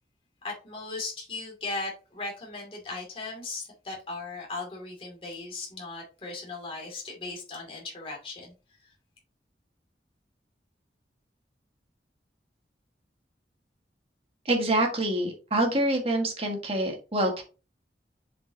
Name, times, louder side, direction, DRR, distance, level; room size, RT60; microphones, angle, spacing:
voice 1, 0.4-8.5, left 3 dB, 30° left, -1 dB, 2.5 m, -37 dB
voice 2, 14.5-17.4, right 1 dB, 35° right, 2 dB, 1.6 m, -26 dB
7.4 x 5.2 x 2.8 m, 0.33 s
head